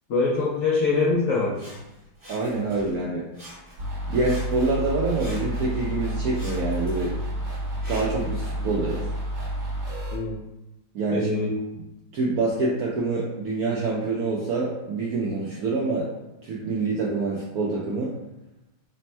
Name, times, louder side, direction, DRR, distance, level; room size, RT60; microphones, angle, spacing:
voice 1, 0.1-1.6 10.1-10.4 11.1-11.5, left 3 dB, 75° left, -4 dB, 0.7 m, -23 dB
Sawing, 1.5-3.0 3.3-3.9 4.2-5.9 6.3-8.3 9.0-9.1, equal, 35° right, 0.3 m, -45 dB
voice 2, 2.3-3.2 4.1-7.2 7.9-9.1 10.9-11.3 11.7-11.8 12.1-16.1 16.4-18.2, right 3 dB, 75° right, -4 dB, 0.8 m, -26 dB
sound 1, 3.8-10.2, right 1 dB, 55° right, 1.0 m, -30 dB
3.4 x 2.1 x 4.2 m, 0.96 s
omnidirectional pair, 2.1 m